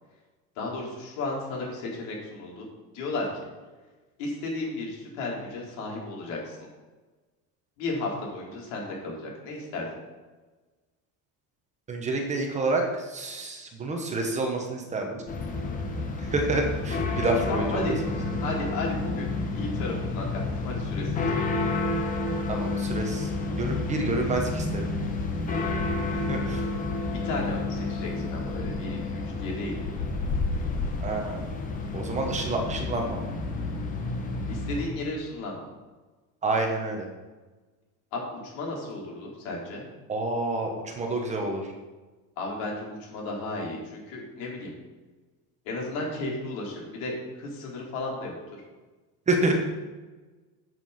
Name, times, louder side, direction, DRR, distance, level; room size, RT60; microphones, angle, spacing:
voice 1, 0.6-2.7 2.9-3.3 4.2-6.6 7.8-9.9 17.5-18.0 18.4-21.1 27.2-29.8 34.5-35.7 38.1-39.8 42.4-44.7 45.7-48.4, left 2 dB, 90° left, -2 dB, 3.7 m, -34 dB
voice 2, 11.9-15.2 16.2-17.9 22.5-23.3 23.6-24.9 26.1-26.6 31.0-31.4 31.9-33.2 36.4-37.1 40.1-41.7 49.3-49.5, right 2 dB, 20° right, 2 dB, 1.1 m, -28 dB
sound 1, 15.3-34.9, left 3 dB, 20° left, 1.2 m, -30 dB
8.0 x 7.8 x 5.8 m, 1.3 s
cardioid pair, 175°, 39 cm